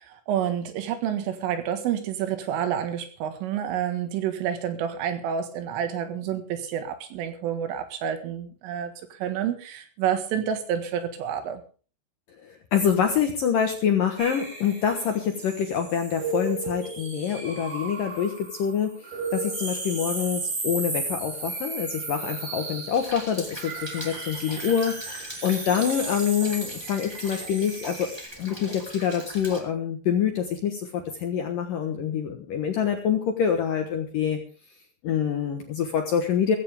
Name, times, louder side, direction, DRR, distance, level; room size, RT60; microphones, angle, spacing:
voice 1, 0.0-11.6, right 9 dB, 85° right, 4.3 m, -29 dB
voice 2, 12.4-28.1 28.4-34.4 35.0-36.6, left 8 dB, 70° left, 2.1 m, -26 dB
sound 1, 14.2-28.3, right 3 dB, 60° right, 7.8 m, -35 dB
Rain, 22.9-29.6, equal, 10° right, 1.3 m, -41 dB
16.0 x 16.0 x 3.6 m
omnidirectional pair, 5.6 m